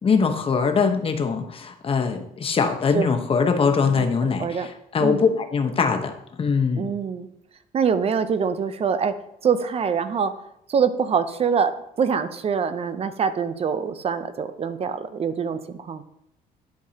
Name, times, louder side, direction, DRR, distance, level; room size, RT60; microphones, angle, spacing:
voice 1, 0.0-6.1 6.4-6.9, left 5 dB, 35° left, 6 dB, 1.0 m, -22 dB
voice 2, 6.8-7.3 7.7-9.1 9.4-10.3 10.7-16.0, right 6 dB, 35° right, 11 dB, 0.6 m, -24 dB
11.5 x 4.7 x 2.8 m, 0.77 s
cardioid pair, 110°, 17 cm